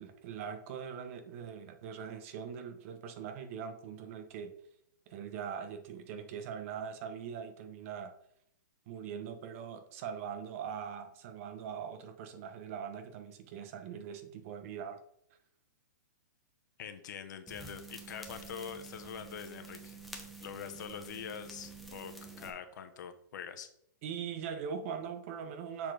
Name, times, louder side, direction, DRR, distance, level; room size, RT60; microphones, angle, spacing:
voice 1, 0.0-4.5 5.1-8.1 8.9-15.0 24.0-25.9, right 7 dB, 45° right, 7 dB, 1.0 m, -41 dB
voice 2, 16.8-20.0 20.4-23.7, left 8 dB, 65° left, 9 dB, 1.0 m, -44 dB
sound 1, 17.5-22.5, right 3 dB, ahead, 0.9 m, -49 dB
7.2 x 4.1 x 4.9 m, 0.72 s
hypercardioid pair, 145°, 11 cm